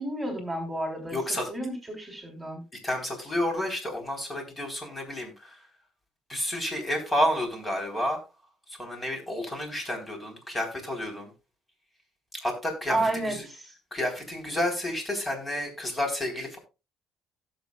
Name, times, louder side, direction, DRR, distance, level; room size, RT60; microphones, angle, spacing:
voice 1, 0.0-1.2 1.5-2.6 12.9-13.7, right 1 dB, 10° right, 1 dB, 3.7 m, -31 dB
voice 2, 1.1-1.5 2.8-5.6 6.3-8.2 8.8-11.3 12.4-13.5 13.9-16.6, left 1 dB, 20° left, 3 dB, 4.0 m, -30 dB
17.0 x 7.6 x 2.4 m, 0.29 s
cardioid pair, 100°, 0 cm